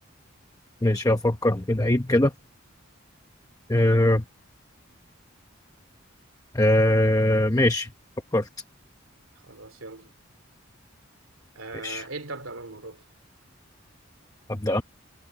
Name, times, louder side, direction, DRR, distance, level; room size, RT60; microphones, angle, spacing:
voice 1, 0.8-2.3 3.7-4.2 6.5-7.9 8.3-8.5 11.8-12.0 14.5-14.8, left 1 dB, 15° left, 1.0 m, -21 dB
voice 2, 9.4-10.1 11.5-13.0, right 3 dB, 85° right, 3.1 m, -39 dB
head